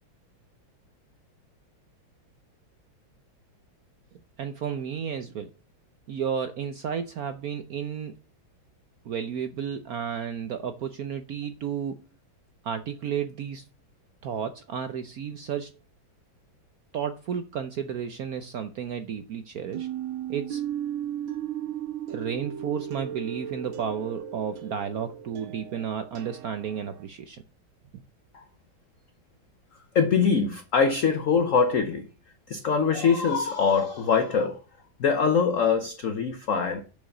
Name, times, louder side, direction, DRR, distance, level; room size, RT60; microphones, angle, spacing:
voice 1, 4.4-5.5 6.1-8.1 9.0-12.0 12.6-13.6 14.2-15.7 16.9-19.9 20.3-20.6 22.1-27.4 27.9-28.0, right 7 dB, 65° right, 0.9 m, -32 dB
sound 1, 19.7-27.0, right 10 dB, 90° right, 1.9 m, -36 dB
voice 2, 29.9-32.1 32.5-34.6 35.0-36.8, left 5 dB, 55° left, 1.0 m, -23 dB
7.1 x 5.2 x 6.6 m
omnidirectional pair, 2.2 m